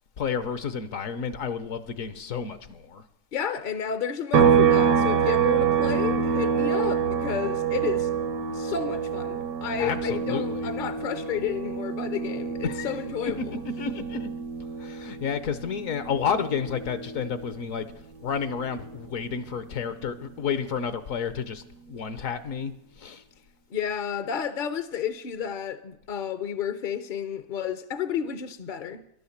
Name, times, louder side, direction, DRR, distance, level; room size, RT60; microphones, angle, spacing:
voice 1, 0.2-3.0 9.8-10.7 12.6-12.9 13.2-14.3 14.8-17.8 18.2-23.2, left 6 dB, 65° left, 1.2 m, -31 dB
voice 2, 3.3-8.1 8.5-13.5 23.7-29.0, left 8 dB, 50° left, 0.6 m, -31 dB
sound 1, 4.3-17.9 18.2-20.4, right 7 dB, 80° right, 1.5 m, -27 dB
12.0 x 10.5 x 7.2 m
omnidirectional pair, 1.6 m